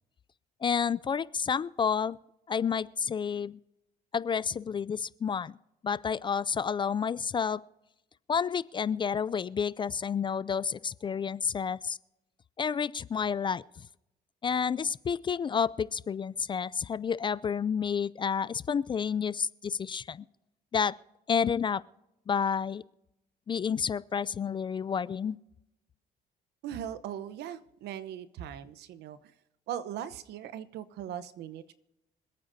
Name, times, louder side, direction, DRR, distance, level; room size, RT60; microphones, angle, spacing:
voice 1, 0.6-2.2 2.5-3.6 4.1-5.5 5.8-7.6 8.3-12.0 12.6-13.6 14.4-20.2 20.7-20.9 21.3-21.8 22.3-22.8 23.5-25.4, left 6 dB, 30° left, 19 dB, 0.4 m, -30 dB
voice 2, 26.6-29.2 29.7-31.7, right 10 dB, 80° right, 14 dB, 0.9 m, -39 dB
26.5 x 9.0 x 2.7 m, 0.90 s
cardioid pair, 110°, 17 cm